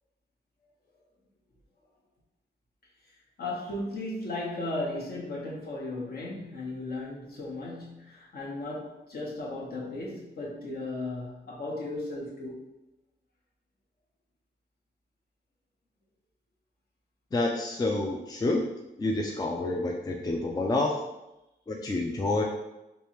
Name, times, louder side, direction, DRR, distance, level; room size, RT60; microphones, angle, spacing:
voice 1, 3.4-12.6, left 2 dB, 60° left, -4 dB, 1.1 m, -36 dB
voice 2, 17.3-18.6 19.0-21.0 21.7-22.4, left 2 dB, 20° left, 1 dB, 0.4 m, -28 dB
3.3 x 3.1 x 2.9 m, 0.93 s
wide cardioid pair, 100°, 18 cm